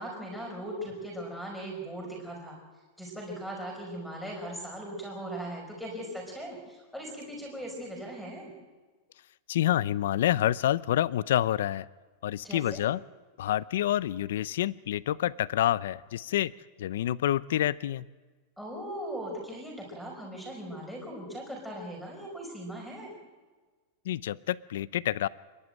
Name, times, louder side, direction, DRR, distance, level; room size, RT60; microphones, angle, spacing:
voice 1, 0.0-2.6 3.0-8.5 12.4-12.8 18.6-23.1, right 1 dB, ahead, 0 dB, 5.3 m, -39 dB
voice 2, 9.5-11.9 12.2-13.0 13.4-16.5 16.8-18.1 24.0-25.3, left 12 dB, 70° left, 19 dB, 0.5 m, -28 dB
27.5 x 11.5 x 9.0 m, 1.3 s
supercardioid pair, 180°, 0 cm